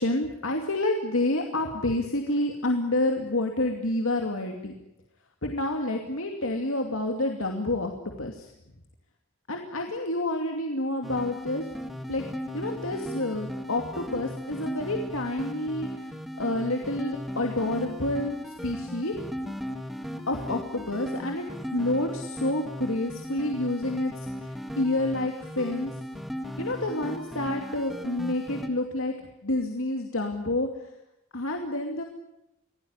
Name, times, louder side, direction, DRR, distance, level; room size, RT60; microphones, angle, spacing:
voice 1, 0.0-4.8 5.4-7.9 8.2-8.5 9.5-11.7 12.1-12.2 12.5-19.2 20.3-25.9 26.6-30.9 31.3-32.0, left 2 dB, 75° left, 3 dB, 2.6 m, -29 dB
sound 1, 11.0-28.7, equal, ahead, 1.8 m, -36 dB
25.0 x 17.5 x 9.7 m, 0.89 s
head